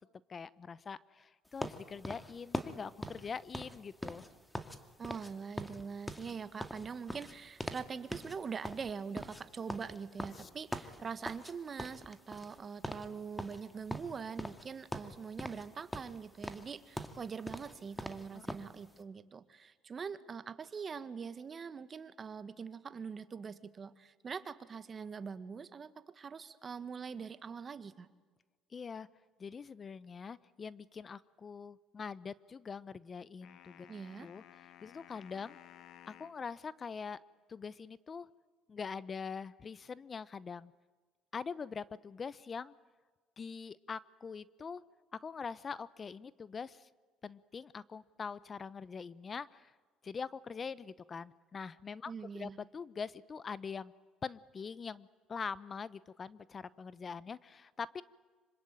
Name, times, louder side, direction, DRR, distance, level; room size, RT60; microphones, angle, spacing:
voice 1, 0.3-4.2 10.3-10.5 18.3-18.4 28.7-29.1 29.4-33.9 34.2-34.4 34.8-35.6 36.1-37.2 37.5-38.3 38.7-40.7 41.3-42.7 43.4-44.8 45.1-46.9 47.2-49.7 50.0-53.9 54.2-58.0, left 5 dB, 35° left, 19 dB, 0.8 m, -43 dB
sound 1, 1.6-4.8 5.0-5.3 5.6-7.9 8.1-8.4 8.6-11.5 11.8-12.6 12.8-13.1 13.4-14.7 14.9-15.7 15.9-18.7, equal, 5° left, 2.2 m, -42 dB
voice 2, 5.0-28.1 33.9-34.3 52.1-52.6, right 6 dB, 35° right, 13 dB, 1.7 m, -43 dB
sound 2, 33.4-36.4, left 11 dB, 65° left, 1.7 m, -56 dB
26.0 x 25.0 x 9.1 m, 1.4 s
supercardioid pair, 90°, 0 cm